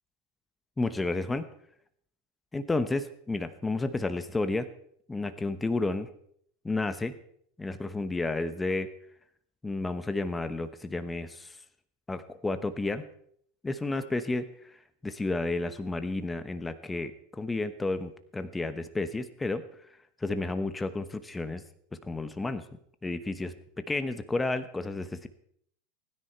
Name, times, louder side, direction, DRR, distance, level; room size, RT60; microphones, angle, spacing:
voice 1, 0.8-1.5 2.5-4.7 5.1-6.1 6.6-7.1 7.6-8.9 9.6-11.6 12.1-13.0 13.6-14.8 15.0-19.6 20.2-21.6 22.0-22.7 23.0-25.3, left 2 dB, 10° left, 11 dB, 0.9 m, -31 dB
25.0 x 10.0 x 4.4 m, 0.67 s
supercardioid pair, 115°, 0 cm